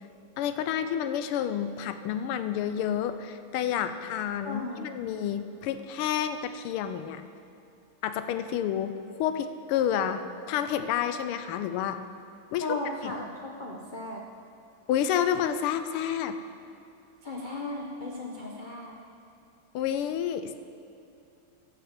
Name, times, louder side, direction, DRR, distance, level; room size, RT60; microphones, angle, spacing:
voice 1, 0.4-7.2 8.0-12.0 12.5-12.8 13.0-13.1 14.9-16.4 19.7-20.5, left 9 dB, 85° left, 10 dB, 1.5 m, -29 dB
voice 2, 4.4-4.9 12.6-14.2 17.2-18.9, left 2 dB, 65° left, -1 dB, 0.4 m, -36 dB
13.5 x 6.0 x 7.3 m, 2.8 s
omnidirectional pair, 2.4 m